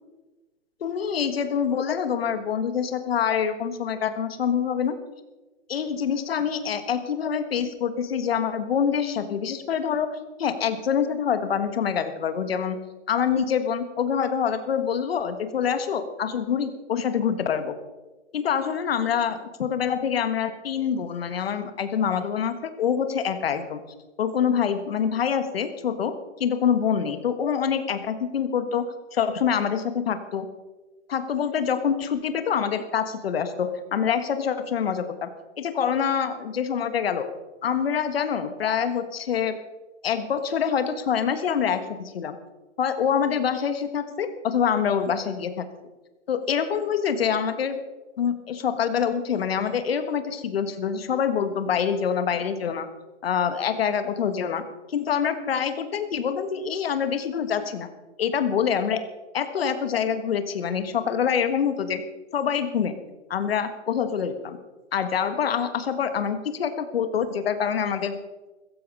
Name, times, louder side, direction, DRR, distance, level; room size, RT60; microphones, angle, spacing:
voice 1, 0.8-5.0 5.7-12.8 13.1-17.7 18.3-23.8 24.2-26.1 26.4-28.8 29.1-30.5 31.1-35.3 35.6-37.3 37.6-39.6 40.0-42.4 42.8-45.6 46.3-47.8 48.2-52.9 53.2-54.6 54.9-57.9 58.2-59.0 59.3-62.0 62.3-63.0 63.3-64.6 64.9-68.2, left 7 dB, 50° left, 9 dB, 1.6 m, -25 dB
15.5 x 14.5 x 5.4 m, 1.2 s
hypercardioid pair, 170°, 37 cm